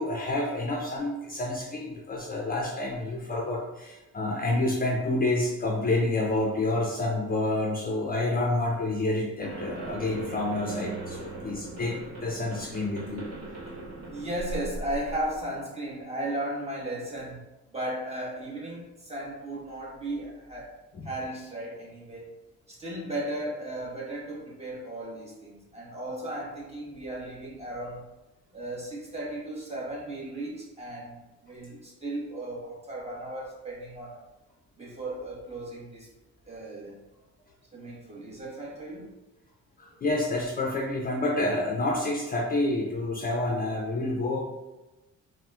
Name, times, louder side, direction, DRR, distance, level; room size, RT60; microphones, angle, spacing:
voice 1, 0.0-13.3 20.9-21.1 39.8-44.4, left 2 dB, 30° left, -1 dB, 0.4 m, -28 dB
sound 1, 9.4-15.4, right 1 dB, 60° right, 1.1 m, -39 dB
voice 2, 14.1-17.4 17.7-20.7 21.0-22.3 22.7-28.0 28.5-34.2 34.8-36.1 36.5-37.0 37.7-39.1, right 1 dB, 20° right, -5 dB, 1.1 m, -36 dB
3.9 x 2.1 x 2.3 m, 1.1 s
cardioid pair, 90°, 30 cm